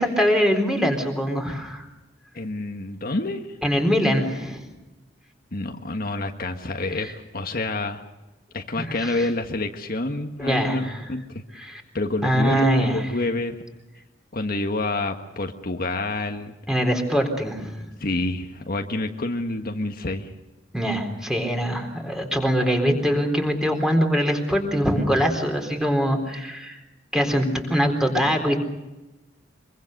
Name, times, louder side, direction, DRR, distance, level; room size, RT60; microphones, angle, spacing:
voice 1, 0.0-1.9 3.6-4.6 7.0-7.1 8.8-9.3 10.4-11.1 11.5-11.8 12.2-13.1 16.7-17.9 20.7-26.8 27.1-28.6, equal, 5° right, 3 dB, 4.0 m, -23 dB
voice 2, 2.3-3.4 5.5-8.0 8.5-11.4 11.9-13.6 14.3-16.5 18.0-20.3, left 2 dB, 55° left, 4 dB, 1.5 m, -28 dB
24.5 x 23.5 x 6.7 m, 1.0 s
head